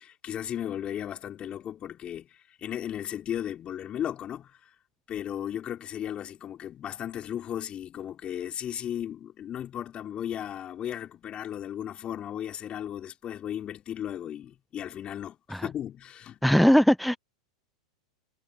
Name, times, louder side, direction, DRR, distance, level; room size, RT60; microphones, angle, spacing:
voice 1, 0.0-4.7 5.1-16.4, left 10 dB, 30° left, 4.9 m, -35 dB
voice 2, 16.4-17.2, equal, ahead, 0.7 m, -20 dB
hypercardioid pair, 105°, 3 cm